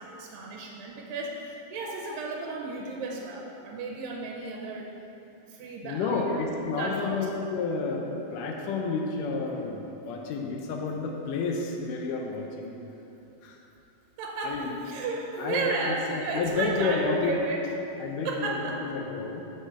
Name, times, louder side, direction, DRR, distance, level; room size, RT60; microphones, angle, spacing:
voice 1, 0.0-4.9 5.5-6.5 6.8-7.3 14.2-17.7 18.2-19.0, right 3 dB, 85° right, 0 dB, 2.4 m, -33 dB
voice 2, 5.8-8.1 8.3-12.7 13.4-13.6 14.4-14.7 15.4-17.4 18.0-19.4, left 4 dB, 75° left, 1 dB, 2.1 m, -30 dB
5.8 x 5.7 x 7.0 m, 2.9 s
omnidirectional pair, 4.0 m